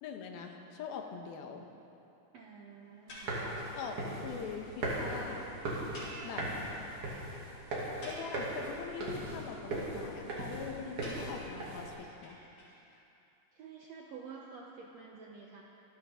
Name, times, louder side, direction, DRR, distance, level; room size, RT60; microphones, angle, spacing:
voice 1, 0.0-1.7 3.8-5.5 6.2-6.5 8.0-12.4, left 6 dB, 90° left, 3 dB, 3.1 m, -43 dB
voice 2, 2.3-3.4 13.5-15.6, right 5 dB, 75° right, -1 dB, 1.6 m, -49 dB
sound 1, 3.1-3.8 4.1-4.2 4.4-4.5 4.8-4.9 5.1-5.2 5.9-6.9 7.3-7.4 7.8-8.8 11.0-13.0, equal, 55° left, 5.6 m, -49 dB
sound 2, 3.1-11.9, right 1 dB, 55° right, 4.0 m, -39 dB
26.5 x 13.0 x 3.8 m, 2.8 s
omnidirectional pair, 4.2 m